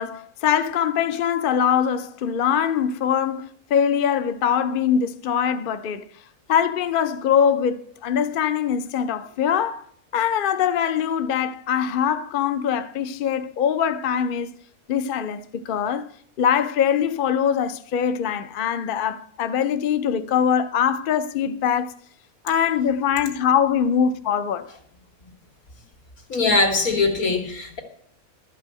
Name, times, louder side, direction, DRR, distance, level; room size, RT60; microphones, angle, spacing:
voice 1, 0.0-6.1 6.5-9.8 10.1-14.5 14.9-16.1 16.4-21.9 22.4-24.7, left 8 dB, 55° left, 0.6 m, -22 dB
voice 2, 26.3-27.8, left 3 dB, 85° left, 2.3 m, -21 dB
12.0 x 5.5 x 7.5 m
omnidirectional pair, 1.5 m